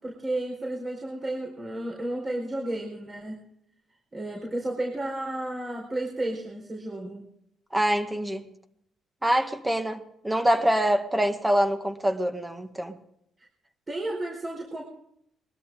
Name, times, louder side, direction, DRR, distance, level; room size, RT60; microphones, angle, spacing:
voice 1, 0.0-3.4 4.1-7.2 13.9-14.8, right 1 dB, 30° right, -1 dB, 4.6 m, -32 dB
voice 2, 7.7-8.5 9.2-13.0, right 1 dB, 10° right, 7 dB, 1.9 m, -25 dB
22.0 x 13.0 x 3.8 m, 0.73 s
cardioid pair, 90°, 0 cm